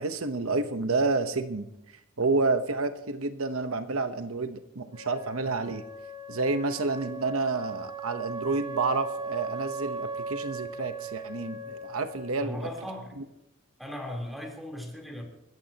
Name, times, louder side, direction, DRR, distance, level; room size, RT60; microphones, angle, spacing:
voice 1, 0.0-1.7 2.2-5.8 6.3-12.6, right 3 dB, 75° right, 0.9 m, -29 dB
Wind instrument woodwind instrument, 4.9-12.6, right 3 dB, 25° right, 4.8 m, -38 dB
voice 2, 12.4-13.2 13.8-15.2, left 1 dB, ahead, 3.5 m, -37 dB
27.5 x 14.5 x 2.9 m
head